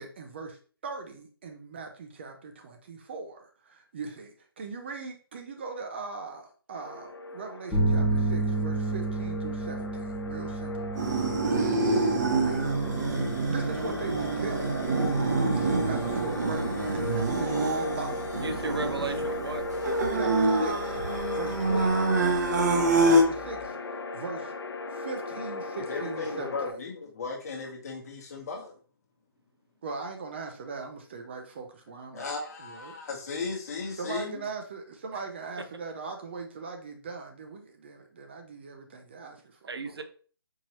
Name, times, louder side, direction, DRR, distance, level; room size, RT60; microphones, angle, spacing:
voice 1, 0.0-11.7 12.4-12.7 13.5-14.8 15.5-18.3 19.0-19.1 20.1-22.3 22.5-24.5 24.9-26.8 29.8-32.3 32.6-32.9 34.0-40.0, right 4 dB, 30° right, 0.4 m, -40 dB
sound 1, 6.7-26.7, left 2 dB, 80° left, 0.7 m, -37 dB
sound 2, 7.7-23.6, right 2 dB, 10° left, 0.9 m, -34 dB
sound 3, 11.0-23.2, right 2 dB, 45° right, 0.8 m, -26 dB
voice 2, 18.4-19.7 39.7-40.0, right 4 dB, 80° right, 0.7 m, -34 dB
voice 3, 25.9-28.7 32.1-34.4, left 4 dB, 40° left, 1.1 m, -36 dB
4.5 x 2.8 x 2.9 m
figure-of-eight pair, 155°, 13 cm